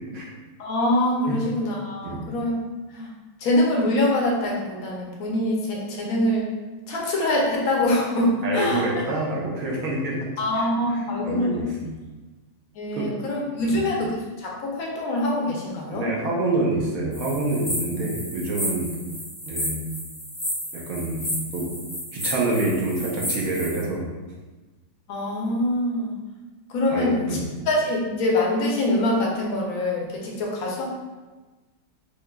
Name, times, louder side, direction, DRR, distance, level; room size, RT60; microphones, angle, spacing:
voice 1, 0.6-2.5 2.9-3.1 3.4-6.4 6.9-9.0 10.4-11.6 12.7-14.0 14.4-16.1 25.1-26.1 26.7-27.1 27.7-30.8, left 1 dB, 65° left, -2 dB, 1.0 m, -24 dB
voice 2, 8.4-10.2 10.5-10.7 10.9-11.9 12.9-13.1 13.6-13.8 15.9-18.9 19.5-19.8 20.7-21.3 21.5-21.7 22.1-24.0 26.9-27.4, right 2 dB, 60° right, -4 dB, 1.0 m, -27 dB
sound 1, 17.1-23.8, equal, 20° left, 0.7 m, -32 dB
4.6 x 2.5 x 2.3 m, 1.2 s
omnidirectional pair, 1.9 m